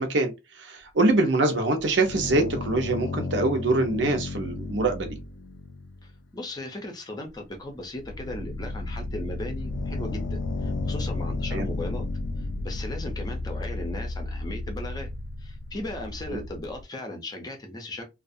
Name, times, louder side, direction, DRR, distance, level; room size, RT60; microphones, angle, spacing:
voice 1, 0.0-5.2 11.5-11.7 16.3-16.4, right 2 dB, 80° right, 0.7 m, -24 dB
sound 1, 1.8-6.3 7.3-7.4 7.8-16.8, left 2 dB, 90° left, 0.4 m, -33 dB
voice 2, 6.0-12.1 12.4-15.1 15.4-18.0, left 1 dB, 20° left, 0.5 m, -37 dB
2.4 x 2.3 x 2.6 m
head